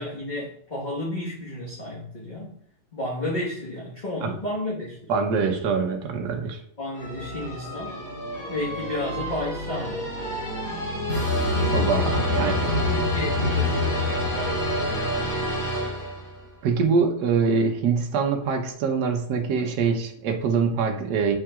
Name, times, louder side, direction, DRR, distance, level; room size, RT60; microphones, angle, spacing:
voice 1, 0.0-2.5 2.9-5.0 6.8-8.0 8.5-10.2 12.1-15.0, left 1 dB, 30° left, -6 dB, 1.5 m, -32 dB
voice 2, 5.1-6.6 11.6-12.7 16.6-21.3, right 5 dB, 80° right, 3 dB, 1.4 m, -24 dB
sound 1, 6.9-16.4, left 1 dB, 70° left, 3.8 m, -27 dB
9.1 x 5.7 x 2.4 m, 0.63 s
omnidirectional pair, 1.8 m